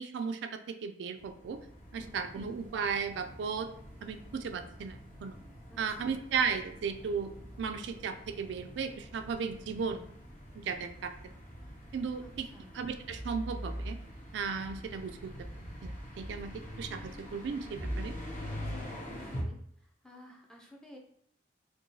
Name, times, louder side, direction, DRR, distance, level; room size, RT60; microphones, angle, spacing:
voice 1, 0.0-1.6 1.9-3.7 4.0-5.4 5.8-7.3 7.6-10.0 10.6-11.1 11.9-12.5 12.7-14.0 14.3-15.3 15.8-16.5 16.8-18.1, right 6 dB, 70° right, 8 dB, 0.3 m, -35 dB
sound 1, 1.2-19.4, equal, 45° left, 0.8 m, -44 dB
voice 2, 5.7-6.2 12.2-12.7 18.7-19.6 20.0-21.0, left 1 dB, 5° left, 0 dB, 0.4 m, -53 dB
4.6 x 2.3 x 2.6 m, 0.69 s
head